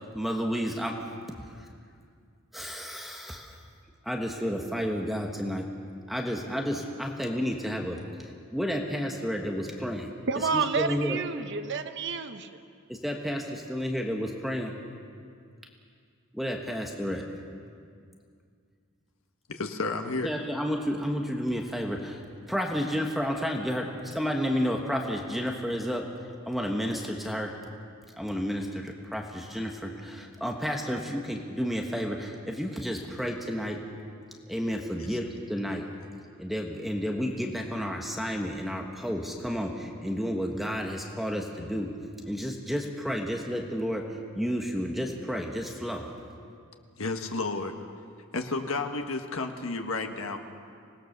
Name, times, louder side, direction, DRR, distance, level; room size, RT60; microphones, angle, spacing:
voice 1, 0.1-1.0 1.4-1.5 2.5-3.5 4.0-5.7 6.1-10.1 10.3-11.2 12.9-14.7 16.3-17.2 20.2-22.2 22.5-26.0 26.5-27.5 28.2-33.8 34.5-35.8 36.4-41.9 42.3-44.0 44.3-46.1, equal, ahead, 1 dB, 1.3 m, -31 dB
voice 2, 10.3-12.6, right 5 dB, 60° right, 9 dB, 1.0 m, -30 dB
voice 3, 19.5-20.3 35.1-35.2 47.0-47.7 48.3-50.4, left 3 dB, 85° left, 4 dB, 1.5 m, -31 dB
25.0 x 19.0 x 6.7 m, 2.2 s
head